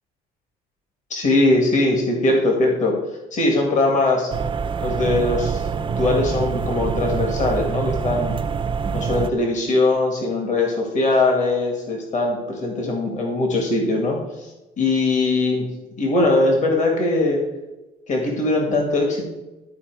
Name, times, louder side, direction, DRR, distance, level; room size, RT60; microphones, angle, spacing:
voice 1, 1.1-3.0 3.3-4.3 4.8-5.7 6.0-8.4 8.9-14.2 14.8-15.7 16.0-17.4 18.1-19.2, left 2 dB, 45° left, 0 dB, 2.1 m, -20 dB
sound 1, 4.3-9.3, right 6 dB, 30° right, 0.6 m, -25 dB
13.0 x 4.4 x 4.8 m, 1.1 s
cardioid pair, 110°, 17 cm